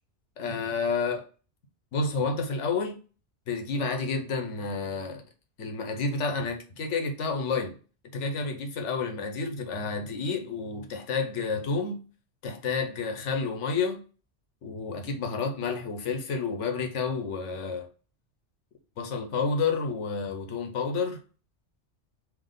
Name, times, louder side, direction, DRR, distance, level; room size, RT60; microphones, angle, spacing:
voice 1, 0.4-1.2 1.9-3.0 3.5-5.2 5.6-7.7 8.1-12.0 12.4-14.0 14.6-17.9 19.0-21.2, left 4 dB, 90° left, 1.2 m, -30 dB
3.6 x 2.9 x 3.8 m
omnidirectional pair, 1.2 m